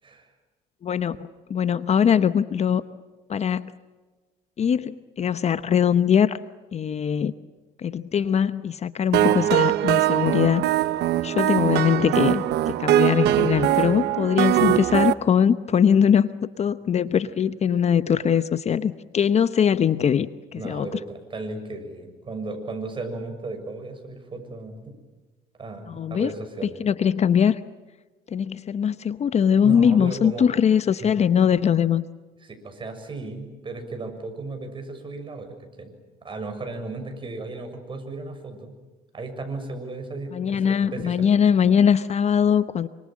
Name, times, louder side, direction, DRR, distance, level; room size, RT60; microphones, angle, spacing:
voice 1, 0.8-2.8 3.3-3.7 4.6-6.4 6.7-7.3 7.8-10.6 11.2-16.3 16.6-20.9 25.9-26.3 26.8-27.6 28.3-32.0 40.3-42.9, left 8 dB, 40° left, 13 dB, 0.8 m, -21 dB
sound 1, 9.1-15.1, right 13 dB, 80° right, 1.0 m, -21 dB
voice 2, 20.6-25.0 25.6-26.8 29.6-30.5 31.0-31.1 32.4-35.9 36.2-38.8 39.1-41.3, right 3 dB, 30° right, 5 dB, 6.9 m, -35 dB
27.5 x 25.5 x 7.4 m, 1.3 s
cardioid pair, 110°, 17 cm